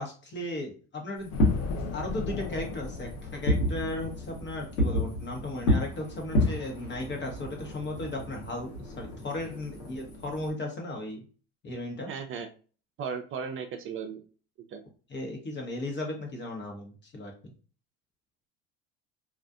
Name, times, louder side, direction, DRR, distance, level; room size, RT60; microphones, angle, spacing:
voice 1, 0.0-1.3 1.9-11.2 11.6-12.1 15.1-17.5, left 1 dB, 35° left, 1 dB, 1.0 m, -36 dB
Fireworks, 1.2-10.5, left 1 dB, 80° left, 1.1 m, -31 dB
sound 1, 1.3-6.2, left 4 dB, 50° left, 0.5 m, -38 dB
voice 2, 12.1-12.5 13.0-14.2 14.7-14.8, right 6 dB, 40° right, 6 dB, 0.4 m, -36 dB
2.5 x 2.4 x 2.3 m, 0.38 s
supercardioid pair, 80°, 31 cm